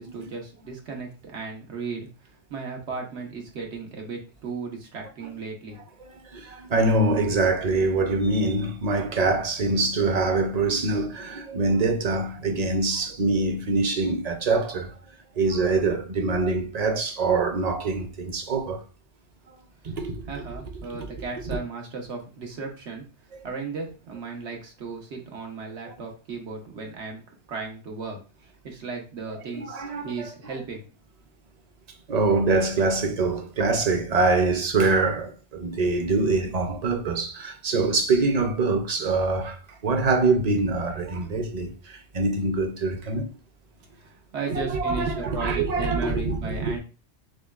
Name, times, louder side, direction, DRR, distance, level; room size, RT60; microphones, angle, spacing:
voice 1, 0.0-2.1 2.5-5.8 20.3-23.0 23.4-27.2 27.5-28.2 28.6-30.8 43.9-46.8, right 4 dB, 85° right, 1.3 m, -35 dB
voice 2, 6.0-14.9 15.4-18.8 19.8-20.4 20.9-21.1 21.5-21.6 23.3-23.4 29.5-30.3 32.1-43.3 44.4-46.7, right 3 dB, 45° right, 0.6 m, -24 dB
6.3 x 2.2 x 2.4 m
omnidirectional pair, 1.1 m